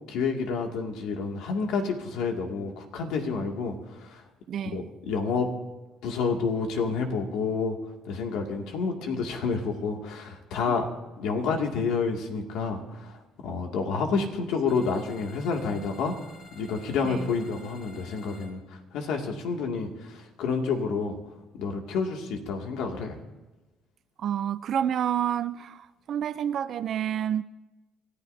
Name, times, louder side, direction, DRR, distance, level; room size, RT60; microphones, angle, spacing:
voice 1, 0.1-4.2 4.6-5.5 6.0-7.8 8.0-10.9 11.2-16.2 16.5-21.2 21.6-23.2, left 5 dB, 85° left, 2 dB, 2.3 m, -29 dB
voice 2, 4.5-4.9 10.7-10.8 17.0-17.4 24.2-27.4, right 9 dB, 55° right, 13 dB, 0.5 m, -29 dB
sound 1, 14.7-18.5, left 1 dB, 35° left, 4.8 m, -51 dB
28.5 x 14.0 x 2.8 m, 1.1 s
cardioid pair, 125°, 0 cm